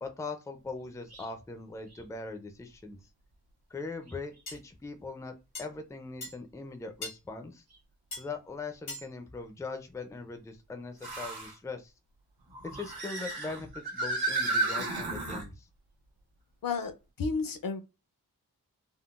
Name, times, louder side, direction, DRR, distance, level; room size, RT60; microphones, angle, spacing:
voice 1, 0.0-3.1 3.7-7.6 8.2-11.9 12.6-15.7, left 3 dB, 10° left, 0.4 m, -41 dB
sound 1, 1.1-1.3 1.9-2.0 4.1-4.2 7.7-7.8 11.0-11.5 12.5-15.5, right 2 dB, 80° right, 1.0 m, -33 dB
sound 2, 4.5-4.6 5.6-5.7 6.2-6.4 7.0-7.2 8.1-8.3 8.9-9.1, left 2 dB, 90° left, 1.4 m, -39 dB
voice 2, 16.6-16.9 17.2-17.8, left 4 dB, 60° left, 0.5 m, -31 dB
3.7 x 2.0 x 2.4 m
wide cardioid pair, 100°, 37 cm